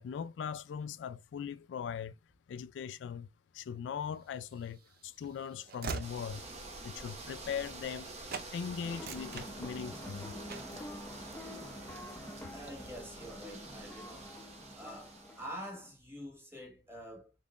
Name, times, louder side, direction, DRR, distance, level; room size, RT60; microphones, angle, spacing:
voice 1, 0.0-2.2 2.5-3.3 3.5-6.4 6.8-8.1 8.5-10.3, left 7 dB, 85° left, 0.3 m, -40 dB
Train / Slam, 4.4-8.0 8.3-8.5 8.9-10.1 10.5-10.8, right 5 dB, 55° right, 0.5 m, -44 dB
sound 1, 6.0-15.7, right 2 dB, 35° right, 0.8 m, -48 dB
sound 2, 8.8-15.9, left 1 dB, 10° left, 0.5 m, -48 dB
voice 2, 12.5-14.4 14.7-17.3, equal, 15° right, 1.5 m, -47 dB
4.0 x 3.7 x 2.4 m
head